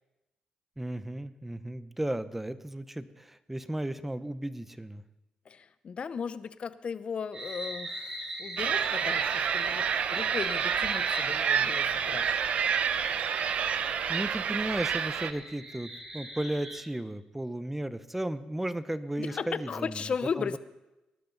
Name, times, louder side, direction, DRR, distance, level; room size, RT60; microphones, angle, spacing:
voice 1, 0.8-5.0 13.8-20.6, right 1 dB, 10° right, 14 dB, 0.8 m, -35 dB
voice 2, 5.5-12.3 19.2-20.6, left 6 dB, 45° left, 14 dB, 0.8 m, -36 dB
sound 1, 7.3-16.8, equal, 30° right, 6.2 m, -41 dB
sound 2, 8.6-15.3, right 7 dB, 65° right, 0.8 m, -28 dB
19.0 x 11.5 x 4.0 m, 0.98 s
cardioid pair, 80°, 3 cm